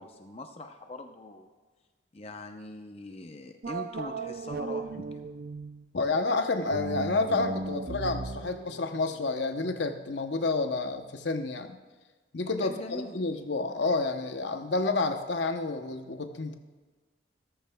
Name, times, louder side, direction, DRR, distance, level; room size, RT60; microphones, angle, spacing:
voice 1, 0.0-1.5 2.1-5.2 12.6-13.2, left 2 dB, 35° left, 5 dB, 0.7 m, -42 dB
sound 1, 3.6-5.9 6.7-10.0, right 3 dB, 50° right, 0.5 m, -37 dB
voice 2, 5.9-11.8 12.3-16.5, left 3 dB, 65° left, 7 dB, 0.8 m, -29 dB
14.5 x 14.0 x 2.3 m, 1.4 s
head